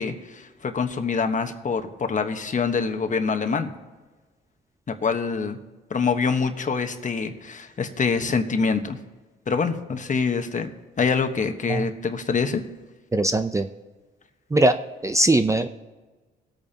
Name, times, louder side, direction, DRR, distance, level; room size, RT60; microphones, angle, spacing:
voice 1, 0.0-3.7 4.9-5.6 5.9-9.0 9.5-10.7 11.0-12.6, left 5 dB, 40° left, 7 dB, 1.2 m, -25 dB
voice 2, 13.1-13.7 14.5-14.8 15.0-15.7, right 2 dB, 15° right, 8 dB, 0.6 m, -20 dB
20.5 x 8.7 x 2.9 m, 1.3 s
cardioid pair, 90°, 20 cm